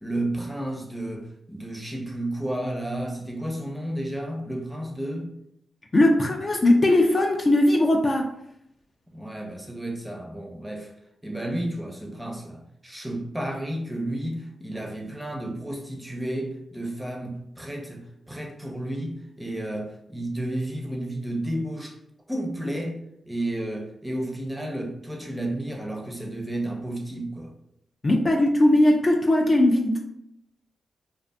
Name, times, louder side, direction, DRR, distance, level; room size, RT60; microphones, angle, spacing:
voice 1, 0.0-5.3 9.1-10.9 11.2-22.0 22.3-23.0 23.3-27.5, right 1 dB, 5° right, 1 dB, 0.6 m, -32 dB
voice 2, 5.9-8.3 28.0-30.0, left 1 dB, 35° left, 2 dB, 0.3 m, -19 dB
2.5 x 2.4 x 2.2 m, 0.77 s
cardioid pair, 65°, 0 cm